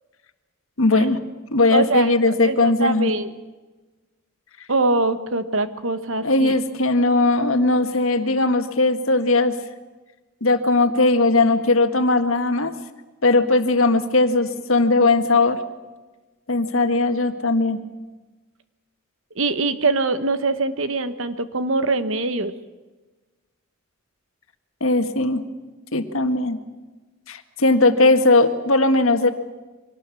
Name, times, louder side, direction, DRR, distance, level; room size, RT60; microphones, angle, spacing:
voice 1, 0.8-1.2 1.5-3.1 6.2-9.6 10.4-12.7 13.2-15.6 16.5-17.8 24.8-25.4 25.9-26.6 27.3-29.3, left 2 dB, 70° left, 8 dB, 1.8 m, -18 dB
voice 2, 1.7-3.3 4.7-6.6 19.3-22.5, right 3 dB, 65° right, 11 dB, 1.4 m, -23 dB
24.0 x 18.5 x 8.5 m, 1.2 s
head